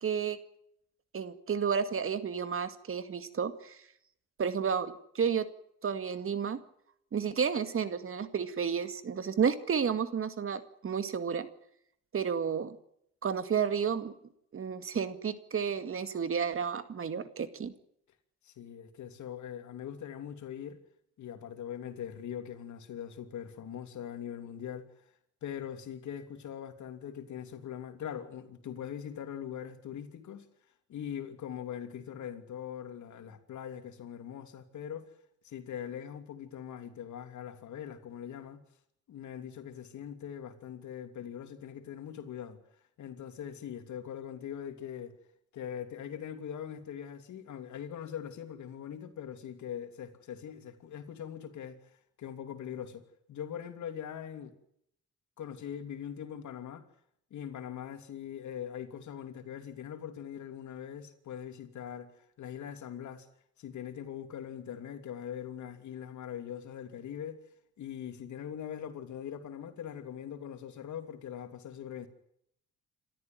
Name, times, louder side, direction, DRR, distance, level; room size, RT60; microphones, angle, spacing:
voice 1, 0.0-0.4 1.1-3.8 4.4-5.5 5.8-6.6 7.1-11.5 12.1-12.8 13.2-14.1 14.5-17.7, right 7 dB, 45° right, 2.2 m, -31 dB
voice 2, 18.4-20.8 21.2-24.9 25.4-30.5 30.9-35.1 35.4-38.6 39.1-42.6 43.0-45.2 45.5-54.5 55.4-56.9 57.3-63.3 63.6-67.4 67.8-72.1, left 9 dB, 70° left, 3.0 m, -42 dB
27.5 x 13.5 x 9.2 m
cardioid pair, 90°, 30 cm